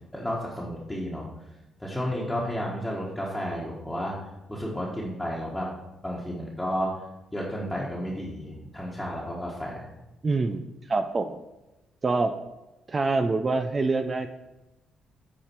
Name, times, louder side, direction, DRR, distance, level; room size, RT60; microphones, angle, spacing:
voice 1, 0.1-1.3 1.8-4.1 4.5-5.7 6.0-6.9 7.3-9.9, equal, 5° left, -5 dB, 1.5 m, -32 dB
voice 2, 10.2-11.4 12.0-12.3 12.9-14.3, right 3 dB, 30° right, 8 dB, 0.4 m, -25 dB
8.7 x 4.9 x 4.6 m, 0.99 s
cardioid pair, 90°, 0 cm